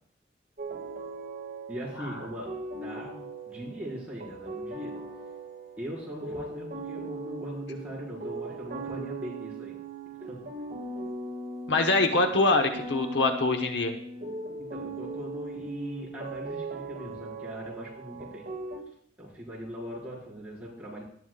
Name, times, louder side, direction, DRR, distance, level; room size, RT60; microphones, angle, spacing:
sound 1, 0.6-18.8, right 2 dB, 50° right, 2.1 m, -39 dB
voice 1, 1.7-5.0 5.8-9.8 10.2-10.6 14.6-18.5 19.2-21.0, equal, 10° right, -7 dB, 4.9 m, -40 dB
voice 2, 11.7-14.0, left 3 dB, 65° left, 5 dB, 1.0 m, -24 dB
18.5 x 11.0 x 2.4 m, 0.65 s
head